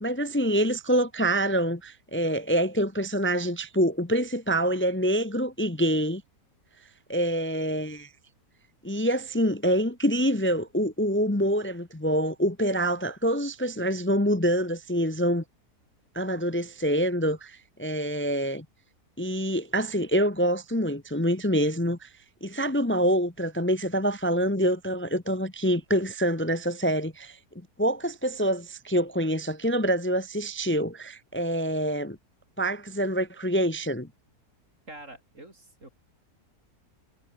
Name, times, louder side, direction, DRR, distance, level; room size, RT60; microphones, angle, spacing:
voice 1, 0.0-6.2 7.1-8.1 8.8-15.4 16.1-18.6 19.2-22.1 22.4-27.4 27.8-32.2 32.6-34.1, equal, 10° left, 0.8 m, -26 dB
voice 2, 34.9-35.9, right 1 dB, 55° right, 6.8 m, -46 dB
omnidirectional pair, 1.6 m